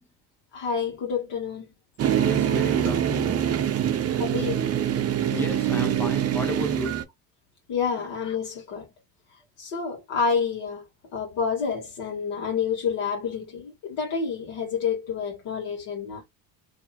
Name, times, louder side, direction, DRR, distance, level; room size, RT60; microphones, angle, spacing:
voice 1, 0.5-1.7 4.2-4.6 7.7-8.9 9.6-10.8 11.1-16.2, left 6 dB, 60° left, 1.3 m, -28 dB
sound 1, 2.0-7.0, right 10 dB, 30° right, 0.6 m, -24 dB
voice 2, 2.2-3.5 4.1-4.3 5.3-7.0 8.0-8.1, left 2 dB, 5° left, 0.7 m, -34 dB
2.7 x 2.7 x 2.4 m
hypercardioid pair, 75°, 49 cm